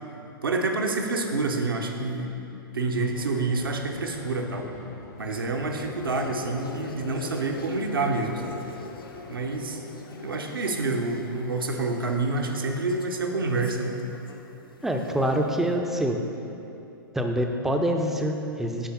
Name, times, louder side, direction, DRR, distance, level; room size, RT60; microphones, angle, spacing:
voice 1, 0.4-2.3 2.7-4.7 5.2-8.6 9.3-9.8 10.2-14.0, right 3 dB, 70° right, 2 dB, 0.8 m, -28 dB
sound 1, 3.1-13.2, left 4 dB, 40° left, 0.6 m, -46 dB
sound 2, 5.2-15.7, left 3 dB, 70° left, 0.7 m, -43 dB
voice 2, 14.8-16.2 17.1-18.9, equal, 5° right, 3 dB, 0.4 m, -25 dB
9.3 x 3.4 x 5.6 m, 2.8 s
figure-of-eight pair, 110°, 12 cm